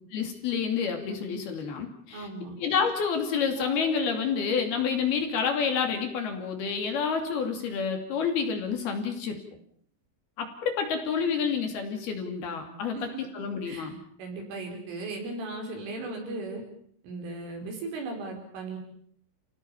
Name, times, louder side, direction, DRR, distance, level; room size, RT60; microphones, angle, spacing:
voice 1, 0.1-2.3 2.6-9.4 10.4-14.0, left 6 dB, 55° left, 4 dB, 4.4 m, -29 dB
voice 2, 2.1-2.6 12.9-13.2 13.7-13.9 14.2-16.6 17.0-18.8, right 3 dB, 80° right, 2 dB, 7.7 m, -37 dB
sound 1, 3.6-7.5, right 4 dB, 65° right, 6.6 m, -47 dB
29.5 x 17.0 x 7.1 m, 0.63 s
omnidirectional pair, 5.6 m